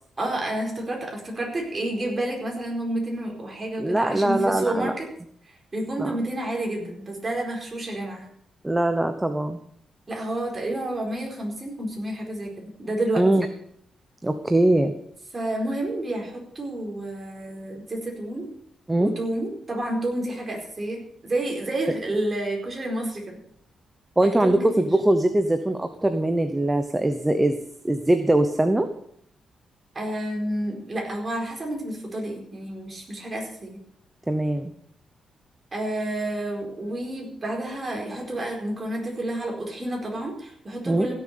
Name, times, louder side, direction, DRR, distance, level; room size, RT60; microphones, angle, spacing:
voice 1, 0.2-5.1 5.7-8.2 10.1-13.2 15.3-18.5 19.0-23.2 24.2-24.9 29.9-33.8 35.7-41.1, right 1 dB, 25° right, 0 dB, 4.6 m, -30 dB
voice 2, 3.8-4.9 6.0-6.1 8.6-9.6 13.2-13.5 14.2-14.9 18.9-19.1 24.2-27.6 27.8-28.9 34.3-34.7 40.9-41.1, right 1 dB, 10° right, 8 dB, 0.9 m, -22 dB
16.5 x 7.4 x 6.8 m, 0.68 s
cardioid pair, 130°, 0 cm